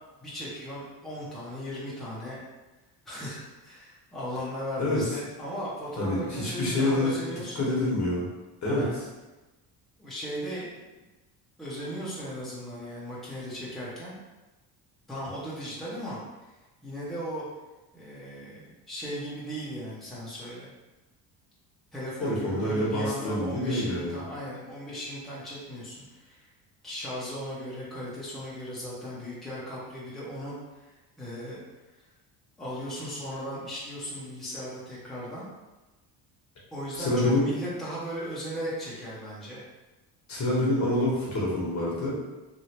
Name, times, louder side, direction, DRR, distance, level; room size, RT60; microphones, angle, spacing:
voice 1, 0.2-2.4 3.0-7.9 8.6-8.9 10.0-10.9 11.6-14.2 15.1-16.2 16.8-17.5 17.9-20.7 21.9-26.5 26.8-30.9 31.2-31.6 32.6-35.5 36.7-39.6, equal, ahead, -8 dB, 1.0 m, -37 dB
voice 2, 6.0-7.1 7.5-8.3 8.6-9.0 22.2-24.2 36.9-37.5 40.3-42.2, left 1 dB, 40° left, -5 dB, 1.2 m, -27 dB
3.1 x 2.7 x 2.9 m, 1.1 s
cardioid pair, 100°, 42 cm